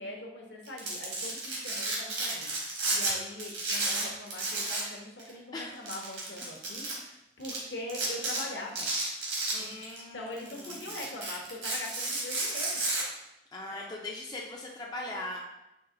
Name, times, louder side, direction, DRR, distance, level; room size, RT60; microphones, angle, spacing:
voice 1, 0.0-2.5 2.9-8.9 9.5-9.7 10.1-12.8 13.6-13.9, left 2 dB, 65° left, 1 dB, 0.8 m, -42 dB
Domestic sounds home sounds, 0.6-3.1 3.4-4.9 5.2-5.3 5.9-6.9 7.4-7.6 7.9-8.4 8.8-10.0 10.4-13.0, right 2 dB, 70° right, 1.4 m, -32 dB
voice 2, 9.5-10.9 13.5-15.4, left 2 dB, 20° left, -2 dB, 0.4 m, -40 dB
4.6 x 2.9 x 3.7 m, 0.92 s
head